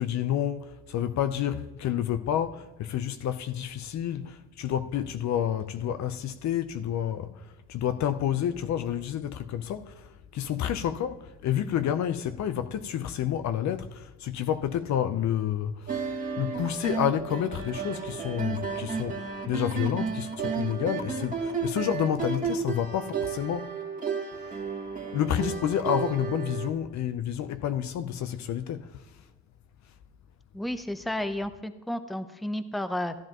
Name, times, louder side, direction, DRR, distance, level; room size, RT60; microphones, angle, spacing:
voice 1, 0.0-23.7 24.3-24.5 25.1-29.0, left 10 dB, 55° left, 0.7 m, -29 dB
sound 1, 15.9-26.7, right 5 dB, 25° right, 1.9 m, -33 dB
voice 2, 30.5-33.1, left 1 dB, ahead, 0.7 m, -32 dB
14.5 x 10.5 x 3.0 m
supercardioid pair, 65°, 33 cm